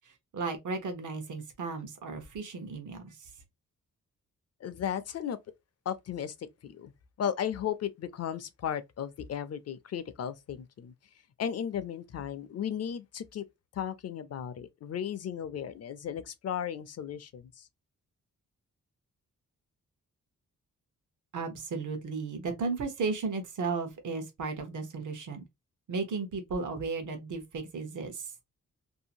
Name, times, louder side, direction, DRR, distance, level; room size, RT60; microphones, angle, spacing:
voice 1, 0.0-3.3 21.3-25.4 25.9-28.5, right 4 dB, 75° right, 0.9 m, -35 dB
voice 2, 4.6-5.4 5.9-6.9 7.2-10.9 11.4-13.4 13.7-17.7, left 9 dB, 55° left, 0.4 m, -35 dB
2.7 x 2.5 x 2.7 m
wide cardioid pair, 150°, 31 cm